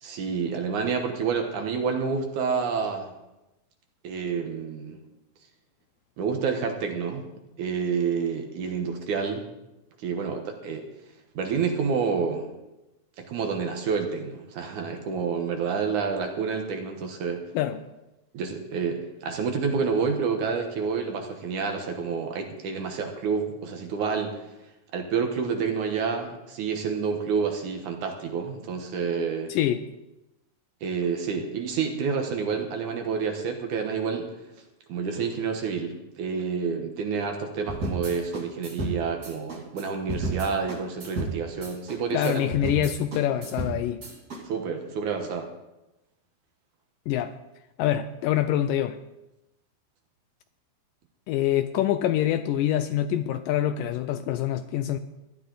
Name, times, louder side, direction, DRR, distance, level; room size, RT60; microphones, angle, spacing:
voice 1, 0.0-3.1 4.0-5.0 6.2-7.3 7.6-9.5 10.0-10.9 11.4-12.5 13.2-17.4 18.3-24.4 24.9-29.5 30.8-34.3 34.9-42.4 44.5-45.5, right 5 dB, 65° right, 4 dB, 2.4 m, -29 dB
voice 2, 17.5-17.9 29.5-29.8 42.1-44.0 47.1-47.4 47.8-49.0 51.3-55.0, left 11 dB, 80° left, 10 dB, 2.0 m, -25 dB
sound 1, 37.7-44.4, right 2 dB, 30° right, 2.4 m, -33 dB
16.5 x 11.5 x 3.9 m, 0.97 s
omnidirectional pair, 4.2 m